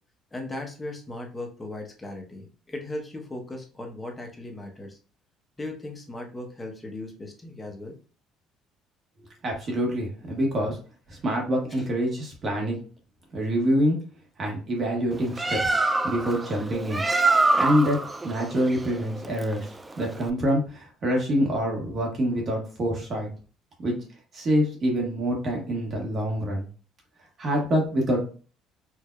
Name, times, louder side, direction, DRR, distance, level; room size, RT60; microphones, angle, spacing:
voice 1, 0.3-5.0 5.6-8.0, left 2 dB, 15° left, 1 dB, 0.9 m, -37 dB
voice 2, 9.4-10.8 11.1-12.8 13.3-14.0 14.4-15.8 16.0-17.0 17.6-18.0 18.2-19.7 20.0-23.3 23.8-23.9 24.3-26.6 27.4-28.3, equal, 35° right, 0 dB, 1.4 m, -26 dB
Bird, 15.1-20.3, right 2 dB, 15° right, 0.3 m, -25 dB
4.6 x 2.6 x 2.3 m, 0.37 s
cardioid pair, 135°, 0 cm